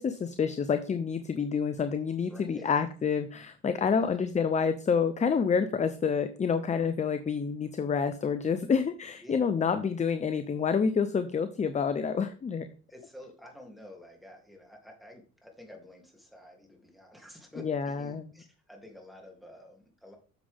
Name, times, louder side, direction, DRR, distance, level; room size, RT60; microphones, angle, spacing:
voice 1, 0.0-12.7 17.6-18.3, left 6 dB, 20° left, 10 dB, 0.6 m, -28 dB
voice 2, 2.3-2.8 4.0-4.2 9.2-9.7 12.9-20.2, left 1 dB, ahead, 1 dB, 2.8 m, -50 dB
8.8 x 6.9 x 3.6 m, 0.39 s
supercardioid pair, 100°, 32 cm